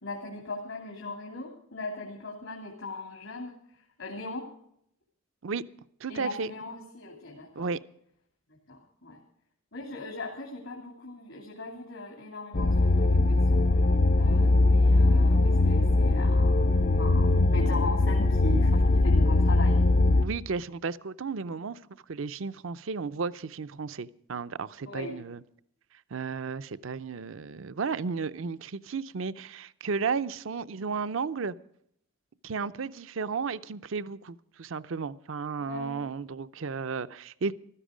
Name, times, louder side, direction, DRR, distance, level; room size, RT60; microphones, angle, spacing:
voice 1, 0.0-4.5 6.1-7.7 8.7-9.2 9.7-13.6 14.1-16.7 16.9-19.8 24.8-25.2 35.6-36.0, left 2 dB, 75° left, 2.7 m, -39 dB
voice 2, 6.0-6.5 7.6-7.8 20.2-21.8 22.1-25.4 26.1-31.6 32.4-37.5, right 5 dB, 65° right, 0.5 m, -33 dB
sound 1, 12.5-20.2, left 2 dB, 45° left, 0.6 m, -21 dB
15.5 x 13.0 x 5.0 m
head